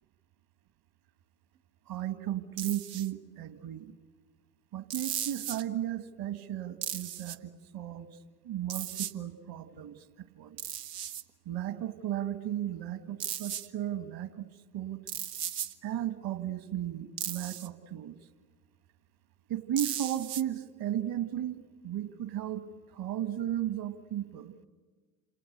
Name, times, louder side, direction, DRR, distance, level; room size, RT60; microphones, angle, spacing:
voice 1, 1.9-3.9 4.7-8.1 8.4-10.6 11.5-14.5 14.7-15.0 15.8-18.2 19.5-22.6 22.9-24.5, right 11 dB, 45° right, 11 dB, 2.0 m, -35 dB
sound 1, 2.6-3.1 4.9-5.6 6.8-7.4 8.7-9.1 10.6-11.2 13.2-13.7 15.1-15.7 17.2-17.7 19.8-20.4, right 10 dB, 65° right, 1.3 m, -36 dB
28.0 x 28.0 x 6.8 m, 1.4 s
figure-of-eight pair, 60°, 50 cm